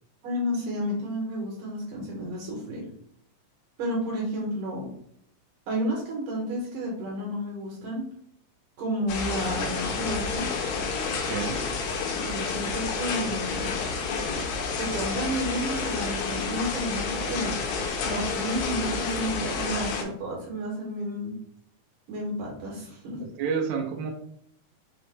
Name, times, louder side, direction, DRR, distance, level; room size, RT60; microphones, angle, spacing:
voice 1, 0.2-2.9 3.8-4.9 5.7-8.0 8.8-10.5 12.2-13.8 14.8-17.6 18.0-21.3 22.1-23.2, equal, 70° right, -3 dB, 2.3 m, -31 dB
sound 1, 9.1-20.0, left 4 dB, 85° left, 2.4 m, -30 dB
voice 2, 11.1-11.6 23.2-24.1, right 6 dB, 90° right, 1 dB, 1.5 m, -30 dB
5.8 x 2.1 x 3.2 m, 0.67 s
omnidirectional pair, 3.8 m